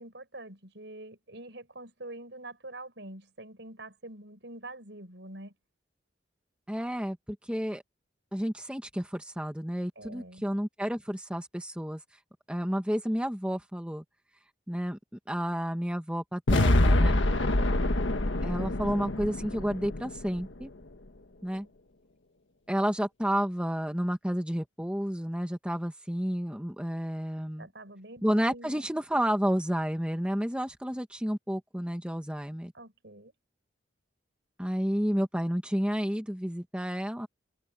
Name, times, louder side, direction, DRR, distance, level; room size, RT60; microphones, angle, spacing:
voice 1, 0.0-5.5 10.0-10.4 17.3-17.8 21.5-21.7 27.6-28.9 32.7-33.3, right 2 dB, 70° right, 6.0 m, -46 dB
voice 2, 6.7-7.8 8.3-12.0 12.5-14.0 14.7-15.0 15.3-17.2 18.4-20.7 21.4-21.6 22.7-27.7 28.2-32.7 34.6-37.3, equal, 5° right, 1.5 m, -31 dB
sound 1, 16.5-20.6, left 1 dB, 85° left, 1.5 m, -25 dB
head